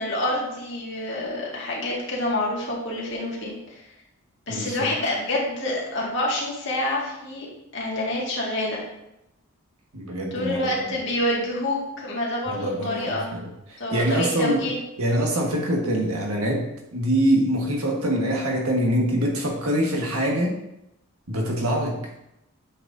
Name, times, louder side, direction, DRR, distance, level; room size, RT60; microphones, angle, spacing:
voice 1, 0.0-3.6 4.5-7.5 7.7-8.8 10.3-13.4 13.8-14.8, left 1 dB, 55° left, -4 dB, 2.0 m, -27 dB
voice 2, 4.5-4.9 9.9-11.0 12.5-14.7 15.0-20.6 21.3-22.0, equal, 85° right, 0 dB, 1.6 m, -24 dB
8.4 x 6.0 x 2.7 m, 0.85 s
head